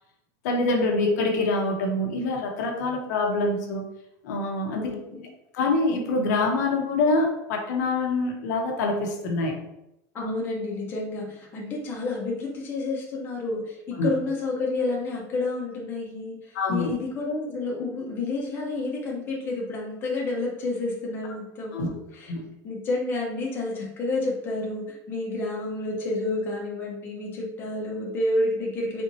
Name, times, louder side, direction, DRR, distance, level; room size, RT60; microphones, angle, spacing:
voice 1, 0.4-3.8 4.2-4.9 5.5-9.6 14.0-14.1 16.5-16.9 21.7-21.9 22.3-22.5, left 2 dB, 80° left, 1 dB, 1.0 m, -25 dB
voice 2, 4.7-5.2 10.1-22.3 22.6-29.0, left 2 dB, 25° left, -3 dB, 1.1 m, -30 dB
4.3 x 3.6 x 2.9 m, 0.86 s
supercardioid pair, 175°, 9 cm